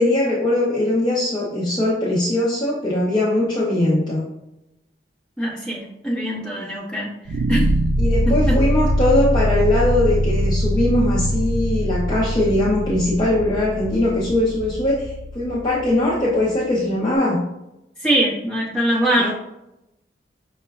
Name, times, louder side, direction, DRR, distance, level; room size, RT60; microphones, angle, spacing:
voice 1, 0.0-4.3 6.6-6.7 8.0-17.4 19.2-19.3, left 1 dB, 25° left, -7 dB, 0.5 m, -20 dB
voice 2, 5.4-7.1 7.5-7.7 8.2-8.6 18.0-19.3, right 1 dB, 5° left, -7 dB, 0.9 m, -22 dB
sound 1, 7.3-16.4, equal, 75° right, 0.3 m, -22 dB
5.4 x 2.1 x 2.3 m, 0.89 s
head